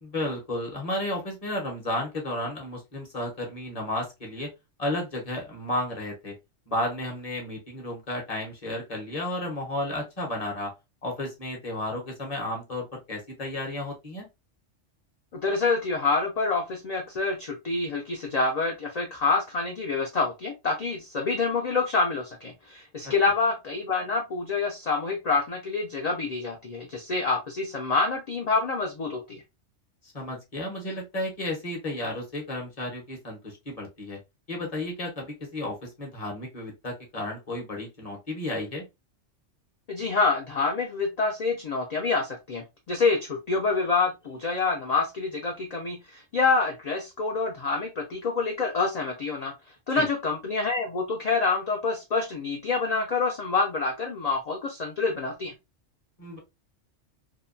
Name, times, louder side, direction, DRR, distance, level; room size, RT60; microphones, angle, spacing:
voice 1, 0.0-4.5 4.8-6.3 6.7-10.7 11.0-14.3 23.0-23.1 30.0-34.2 34.5-38.9 49.9-50.0 56.2-56.4, left 1 dB, 35° left, 0 dB, 0.8 m, -33 dB
voice 2, 15.3-29.4 39.9-49.5 49.9-55.5, left 4 dB, 65° left, 2 dB, 0.4 m, -27 dB
2.8 x 2.2 x 2.4 m, 0.23 s
omnidirectional pair, 1.3 m